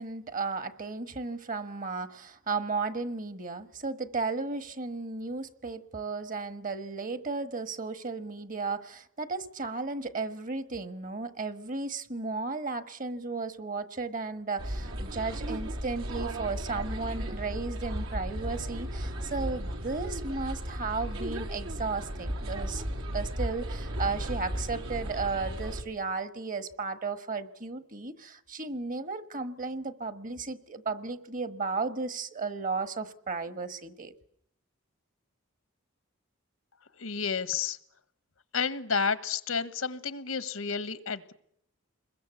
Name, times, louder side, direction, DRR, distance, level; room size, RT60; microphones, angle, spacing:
voice 1, 0.0-22.8 23.1-34.1, right 4 dB, 40° right, 11 dB, 1.4 m, -34 dB
sound 1, 14.6-25.8, equal, 85° right, 3.6 m, -35 dB
voice 2, 37.0-37.8 38.5-41.3, left 5 dB, 85° left, 13 dB, 1.3 m, -31 dB
27.0 x 21.5 x 8.2 m, 0.72 s
head